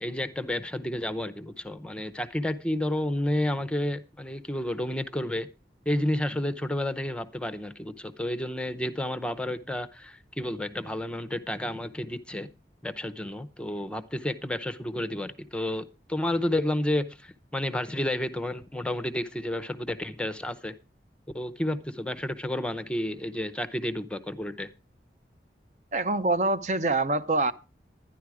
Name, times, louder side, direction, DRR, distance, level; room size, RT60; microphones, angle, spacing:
voice 1, 0.0-5.5 5.9-12.5 12.8-20.7 21.3-24.7, left 1 dB, 5° left, 0.6 m, -31 dB
voice 2, 25.9-27.5, right 2 dB, 40° right, 0.6 m, -25 dB
12.0 x 10.5 x 4.8 m
head